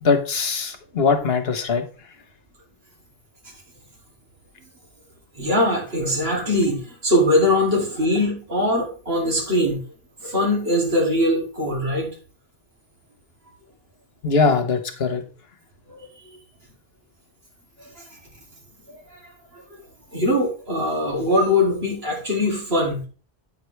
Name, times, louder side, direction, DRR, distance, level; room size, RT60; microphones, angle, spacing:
voice 1, 0.0-1.8 14.2-15.2, left 4 dB, 75° left, 6 dB, 1.4 m, -21 dB
voice 2, 5.4-9.8 10.2-12.1 15.9-16.1 19.1-19.2 19.5-19.6 20.1-23.1, left 1 dB, 75° right, -2 dB, 3.0 m, -21 dB
8.8 x 6.1 x 3.3 m, 0.37 s
omnidirectional pair, 1.0 m